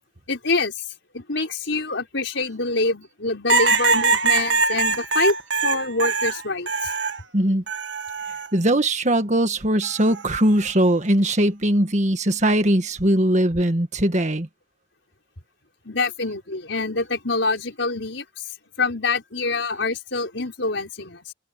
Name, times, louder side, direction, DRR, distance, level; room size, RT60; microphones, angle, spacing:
voice 1, 0.3-0.7 1.1-5.3 5.6-6.9 15.8-18.2 18.8-21.3, left 3 dB, 80° left, 4.7 m, -25 dB
sound 1, 3.5-7.2 7.7-8.5 9.8-10.3, right 4 dB, 75° right, 1.7 m, -22 dB
voice 2, 7.3-7.6 8.5-14.5, right 1 dB, 40° right, 1.8 m, -20 dB
head